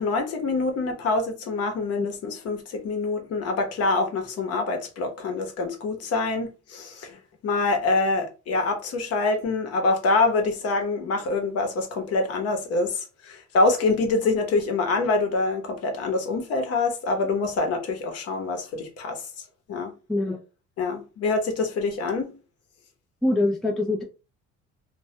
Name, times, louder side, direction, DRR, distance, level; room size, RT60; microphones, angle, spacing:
voice 1, 0.0-7.2 7.4-19.3 19.7-19.9 20.8-22.3, left 3 dB, 55° left, 0.8 m, -25 dB
voice 2, 23.2-24.0, left 2 dB, ahead, 0.3 m, -23 dB
2.2 x 2.1 x 2.8 m
cardioid pair, 135°, 29 cm